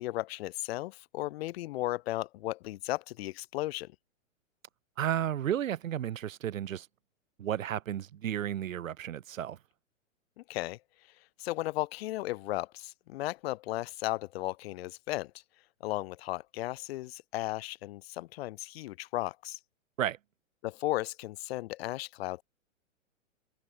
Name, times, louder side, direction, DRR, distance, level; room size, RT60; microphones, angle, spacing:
voice 1, 0.0-3.9 10.4-10.8 11.4-15.3 15.8-19.6 20.6-22.4, left 17 dB, 50° left, 1.4 m, -35 dB
voice 2, 5.0-6.9 7.4-9.6 20.0-20.2, right 10 dB, 80° right, 0.8 m, -32 dB
hypercardioid pair, 120°, 39 cm